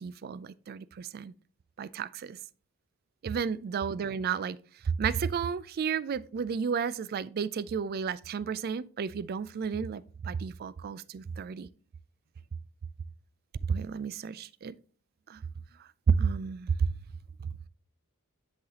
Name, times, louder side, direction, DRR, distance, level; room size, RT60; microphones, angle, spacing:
voice 1, 0.0-1.3 1.8-2.4 3.2-4.6 5.0-11.7 13.7-14.8 15.3-15.4 16.1-16.9, right 6 dB, 45° right, 0.3 m, -32 dB
10.0 x 4.0 x 2.8 m
head